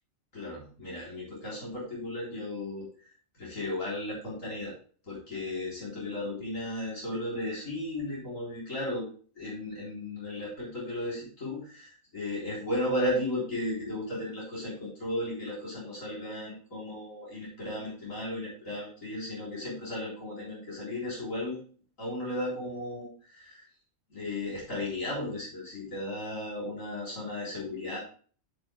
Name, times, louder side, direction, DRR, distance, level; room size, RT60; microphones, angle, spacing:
voice 1, 0.3-4.7 5.0-9.1 9.3-21.6 22.0-23.6 24.1-28.0, left 1 dB, 90° left, -6 dB, 4.5 m, -35 dB
11.0 x 8.0 x 2.3 m, 0.42 s
omnidirectional pair, 1.3 m